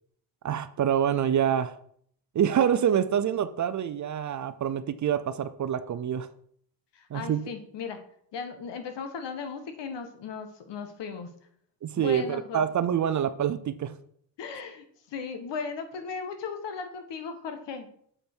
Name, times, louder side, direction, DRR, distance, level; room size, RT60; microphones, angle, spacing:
voice 1, 0.4-1.8 2.3-6.3 7.1-7.4 11.8-14.0, right 9 dB, 40° right, 0.5 m, -26 dB
voice 2, 6.9-8.0 8.3-11.3 12.0-12.6 14.4-17.9, left 5 dB, 65° left, 1.4 m, -37 dB
7.2 x 5.2 x 4.5 m
supercardioid pair, 75°, 45 cm